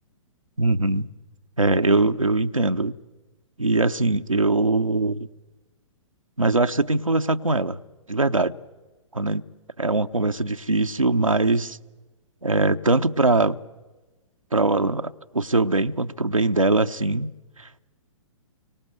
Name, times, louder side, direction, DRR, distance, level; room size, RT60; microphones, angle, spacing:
voice 1, 0.6-1.1 1.6-2.9 3.6-5.3 6.4-7.8 8.1-8.6 9.1-9.4 9.8-11.8 12.4-13.6 14.5-17.3 17.6-17.8, right 2 dB, 90° right, 0.8 m, -22 dB
29.5 x 24.5 x 7.9 m
figure-of-eight pair, 120°, 17 cm